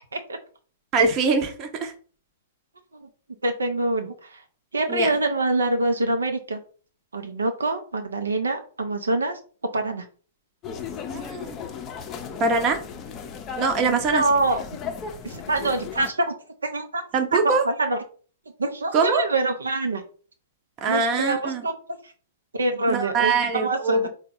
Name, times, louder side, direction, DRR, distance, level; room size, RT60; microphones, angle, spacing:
voice 1, 0.9-1.9 4.9-5.1 11.1-11.5 12.4-12.8 13.6-14.2 17.1-17.6 18.9-19.2 20.8-21.6 22.9-24.1, right 4 dB, 30° right, 5 dB, 0.8 m, -23 dB
voice 2, 3.4-4.4 4.7-6.6 7.1-9.4 9.7-10.0 13.9-14.6 15.2-16.3 16.7-17.0 17.3-18.0 18.6-20.0 20.9-21.7 22.5-24.1, right 2 dB, 80° right, 5 dB, 0.6 m, -25 dB
sound 1, 10.6-16.1, left 6 dB, 30° left, 0.5 m, -36 dB
3.8 x 2.2 x 3.5 m, 0.40 s
figure-of-eight pair, 110°, 0 cm